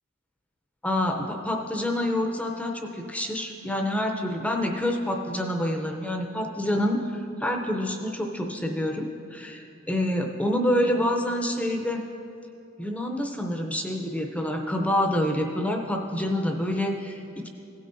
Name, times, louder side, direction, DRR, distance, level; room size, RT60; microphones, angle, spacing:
voice 1, 0.8-12.0 12.8-17.5, left 1 dB, 5° left, 1 dB, 0.5 m, -27 dB
16.5 x 9.1 x 2.6 m, 2.7 s
head